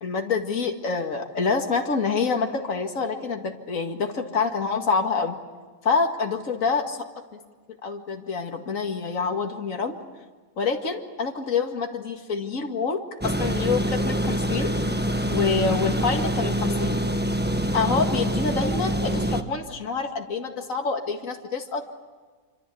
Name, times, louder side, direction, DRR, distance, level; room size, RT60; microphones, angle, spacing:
voice 1, 0.0-5.4 5.8-7.0 7.8-10.0 10.6-14.7 15.3-16.9 17.7-21.8, left 4 dB, 60° left, 3 dB, 2.5 m, -26 dB
sound 1, 13.2-19.4, equal, 5° right, 1.3 m, -25 dB
27.0 x 25.5 x 8.5 m, 1.4 s
omnidirectional pair, 1.6 m